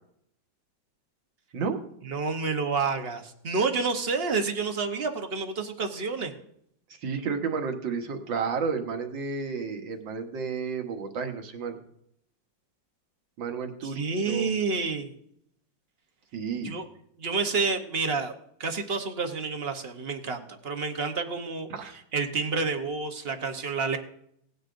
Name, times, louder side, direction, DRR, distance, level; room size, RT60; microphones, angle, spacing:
voice 1, 2.0-6.3 13.8-15.1 16.6-16.8 17.2-18.3 18.6-24.0, right 4 dB, 45° right, 5 dB, 0.8 m, -29 dB
voice 2, 7.0-11.8 13.4-14.5 16.3-16.7 21.7-21.9, right 5 dB, 75° right, 4 dB, 1.9 m, -31 dB
18.0 x 9.6 x 2.5 m, 0.71 s
omnidirectional pair, 2.1 m